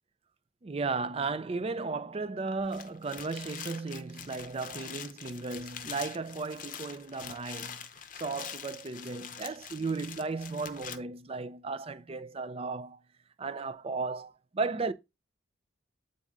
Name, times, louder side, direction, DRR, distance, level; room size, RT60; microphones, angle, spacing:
voice 1, 0.6-7.8 8.1-13.0 13.4-14.9, right 4 dB, 30° right, 0.4 m, -35 dB
sound 1, 2.6-11.0, left 8 dB, 45° left, 0.7 m, -44 dB
8.5 x 4.0 x 3.6 m
head